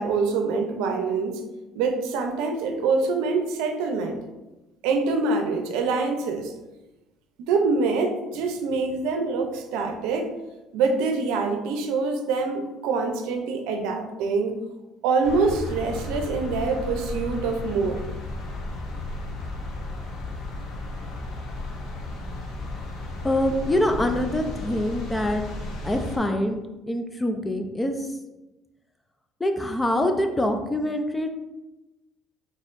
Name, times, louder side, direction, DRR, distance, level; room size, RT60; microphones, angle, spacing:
voice 1, 0.0-1.4 1.8-4.2 4.8-6.5 7.4-10.3 10.7-14.6 15.0-18.0, right 4 dB, 90° right, 4 dB, 0.5 m, -25 dB
sound 1, 15.2-26.2, left 2 dB, 60° left, 0.8 m, -34 dB
voice 2, 23.2-25.4 25.8-28.2 29.4-31.3, left 1 dB, 10° left, 5 dB, 0.4 m, -25 dB
4.3 x 3.5 x 2.5 m, 1.0 s
cardioid pair, 130°, 0 cm